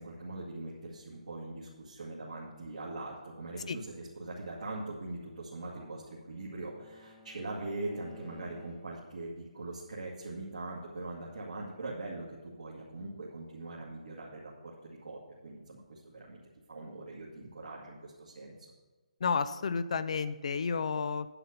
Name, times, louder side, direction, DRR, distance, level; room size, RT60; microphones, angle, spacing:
voice 1, 0.0-16.4 16.7-18.5, right 2 dB, 80° right, -5 dB, 2.1 m, -42 dB
Bowed string instrument, 5.3-9.2, left 3 dB, 15° left, 1.0 m, -57 dB
voice 2, 19.2-21.3, left 5 dB, 55° left, 13 dB, 0.4 m, -31 dB
9.8 x 5.5 x 6.7 m, 1.3 s
hypercardioid pair, 160°, 4 cm